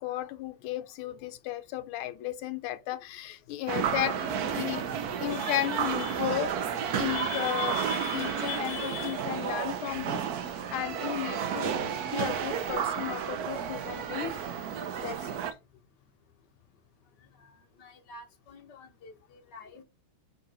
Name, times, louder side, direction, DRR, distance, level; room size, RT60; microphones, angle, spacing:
voice 1, 0.0-4.8 5.2-6.6 7.0-11.8 12.1-14.4 15.0-15.3, left 14 dB, 85° left, 1.6 m, -34 dB
sound 1, 3.7-15.5, right 8 dB, 60° right, 1.1 m, -32 dB
voice 2, 17.8-19.8, left 2 dB, 55° left, 1.8 m, -50 dB
5.3 x 3.8 x 5.5 m
omnidirectional pair, 2.3 m